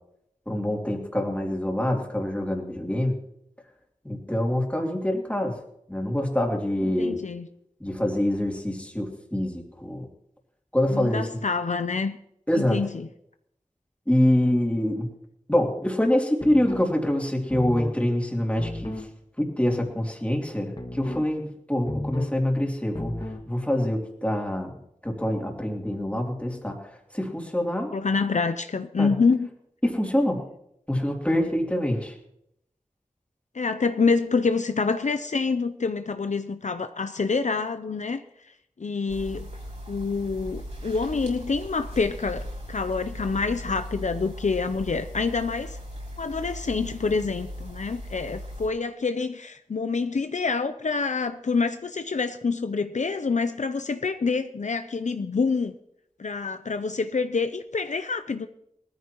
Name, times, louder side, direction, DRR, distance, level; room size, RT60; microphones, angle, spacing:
voice 1, 0.5-3.2 4.0-5.6 5.9-7.2 7.8-10.1 10.7-11.3 12.5-12.8 14.1-15.1 15.5-19.1 19.4-23.1 23.5-24.8 25.0-26.8 27.1-27.9 29.0-29.1 29.8-30.4 30.9-32.1, left 1 dB, 10° left, 0 dB, 3.0 m, -25 dB
voice 2, 6.8-7.5 10.9-12.2 12.5-13.1 27.9-29.5 33.5-39.5 39.9-45.8 46.2-55.7 56.2-58.5, left 4 dB, 65° left, 9 dB, 0.6 m, -27 dB
sound 1, 16.4-16.9 17.5-18.0 18.6-19.1 20.8-21.3 21.9-22.4 22.9-23.5, left 1 dB, 35° left, 2.0 m, -34 dB
sound 2, 39.1-48.7, equal, 60° right, 6.3 m, -38 dB
19.5 x 14.0 x 3.0 m, 0.76 s
wide cardioid pair, 50°, 13 cm